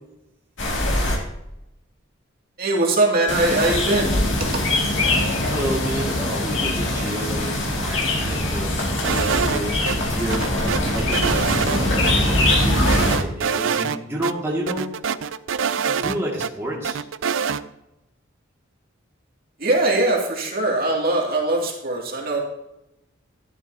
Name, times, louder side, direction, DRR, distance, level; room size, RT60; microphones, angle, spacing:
sound 1, 0.6-1.2 3.3-13.2, left 1 dB, 60° left, 2.3 m, -22 dB
voice 1, 2.6-4.2 4.5-4.6 19.6-22.4, right 2 dB, 50° right, -2 dB, 2.4 m, -21 dB
voice 2, 5.5-10.5 10.9-14.9 15.8-17.0, right 1 dB, 15° right, -5 dB, 2.1 m, -30 dB
sound 2, 9.0-10.0 10.3-11.8 12.0-12.1 12.5-14.0 14.2-14.3 14.7-16.5 16.8-17.6, right 7 dB, 70° right, 0.4 m, -25 dB
12.0 x 11.0 x 2.8 m, 0.88 s
head